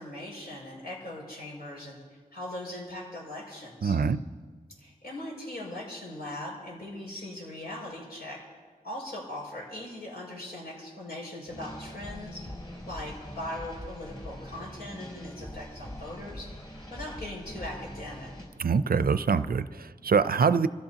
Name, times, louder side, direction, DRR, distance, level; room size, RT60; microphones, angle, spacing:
voice 1, 0.0-2.0 2.3-4.0 4.8-8.4 8.8-12.5 12.9-16.5 16.9-18.3, left 1 dB, 85° left, -3 dB, 6.0 m, -40 dB
voice 2, 3.8-4.2 18.6-20.7, right 5 dB, 70° right, 13 dB, 0.5 m, -24 dB
sound 1, 11.5-18.4, left 1 dB, 30° left, 5.5 m, -42 dB
26.0 x 15.0 x 2.9 m, 1.5 s
wide cardioid pair, 75°, 16 cm